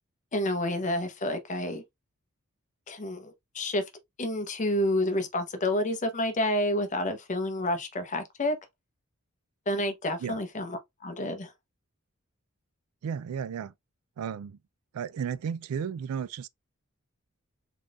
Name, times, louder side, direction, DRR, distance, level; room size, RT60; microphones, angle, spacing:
voice 1, 0.3-1.8 2.9-3.8 4.2-8.6 9.7-11.5, left 1 dB, 35° left, 0.8 m, -29 dB
voice 2, 13.0-13.7 14.2-14.6 14.9-16.5, right 7 dB, 90° right, 0.3 m, -33 dB
3.9 x 3.6 x 2.3 m
head